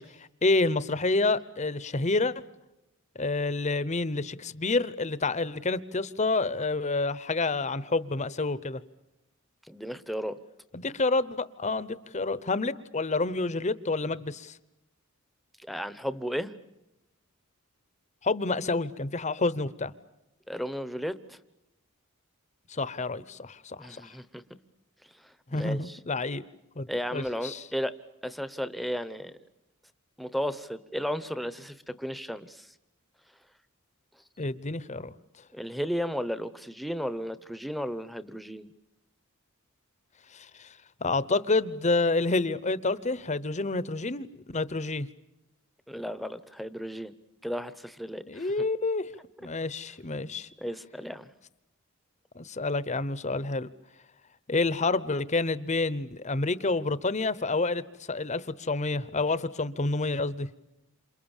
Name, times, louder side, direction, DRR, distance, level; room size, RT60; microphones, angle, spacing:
voice 1, 0.0-2.3 3.1-8.8 10.7-14.5 18.2-19.9 22.7-24.1 25.5-26.4 26.8-27.6 34.4-35.1 40.3-40.7 41.0-45.1 48.3-49.1 49.4-50.5 52.3-53.7 54.5-60.5, left 3 dB, 35° left, 16 dB, 0.9 m, -28 dB
voice 2, 9.7-10.4 15.6-16.5 20.5-21.4 23.8-24.4 25.2-26.0 26.9-27.9 28.2-29.4 30.2-32.7 35.5-38.7 45.9-47.1 47.4-48.5 50.6-51.3, equal, ahead, 13 dB, 1.0 m, -34 dB
29.0 x 27.5 x 7.3 m, 0.93 s
head